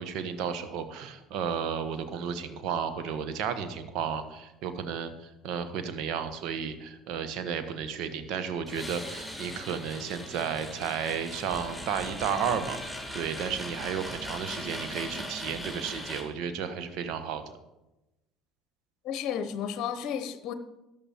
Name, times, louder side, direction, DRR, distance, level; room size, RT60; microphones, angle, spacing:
voice 1, 0.0-17.4, right 7 dB, 60° right, 9 dB, 1.3 m, -33 dB
sound 1, 8.7-16.2, equal, 5° right, 4.8 m, -39 dB
voice 2, 19.0-20.5, left 8 dB, 55° left, 11 dB, 0.9 m, -32 dB
13.5 x 11.0 x 4.5 m, 0.97 s
figure-of-eight pair, 60°, 0 cm